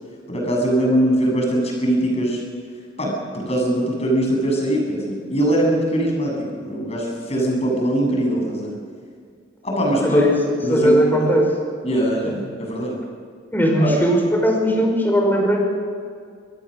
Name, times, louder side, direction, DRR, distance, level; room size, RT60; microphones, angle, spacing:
voice 1, 0.3-2.4 3.0-8.7 9.6-10.2 10.6-11.2 11.8-13.0 13.8-13.9, right 1 dB, 35° left, 0 dB, 7.6 m, -21 dB
voice 2, 10.0-10.4 10.7-11.5 13.5-15.6, equal, 10° left, 1 dB, 5.2 m, -18 dB
25.5 x 20.0 x 6.5 m, 2.2 s
head